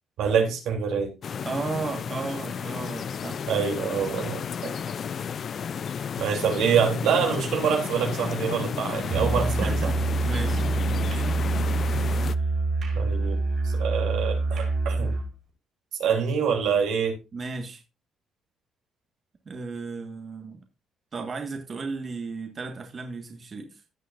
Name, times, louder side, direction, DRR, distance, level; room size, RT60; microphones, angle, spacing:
voice 1, 0.2-1.1 3.4-4.7 6.2-9.7 13.0-13.4 13.6-15.1 16.0-17.2, right 7 dB, 85° right, 3.1 m, -25 dB
sound 1, 1.2-12.3, left 7 dB, 55° left, 0.5 m, -32 dB
voice 2, 1.4-3.4 9.6-11.6 17.3-17.8 19.4-20.6 21.1-23.8, right 4 dB, 40° right, 1.6 m, -35 dB
Musical instrument, 9.0-15.3, right 3 dB, 60° right, 5.1 m, -26 dB
16.5 x 6.3 x 2.6 m
cardioid pair, 90°, 0 cm